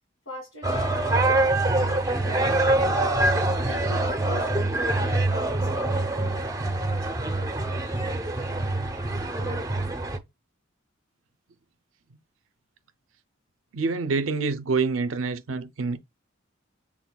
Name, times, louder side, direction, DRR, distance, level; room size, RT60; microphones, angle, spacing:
voice 1, 0.3-3.0 3.6-6.4, left 2 dB, 75° left, 2.1 m, -41 dB
sound 1, 0.6-10.2, right 2 dB, 15° right, 0.6 m, -25 dB
voice 2, 13.7-16.0, right 4 dB, 75° right, 0.5 m, -26 dB
6.1 x 3.6 x 2.2 m
head